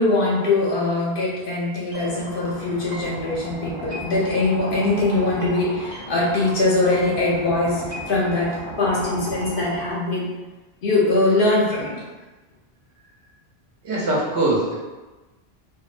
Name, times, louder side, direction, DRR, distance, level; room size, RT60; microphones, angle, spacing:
voice 1, 0.0-10.4 10.8-12.0, left 2 dB, 60° left, -5 dB, 0.7 m, -22 dB
sound 1, 1.9-9.9, equal, 55° right, 0.5 m, -35 dB
voice 2, 13.8-14.7, right 2 dB, 75° right, -5 dB, 0.9 m, -22 dB
2.6 x 2.0 x 2.4 m, 1.2 s
omnidirectional pair, 1.1 m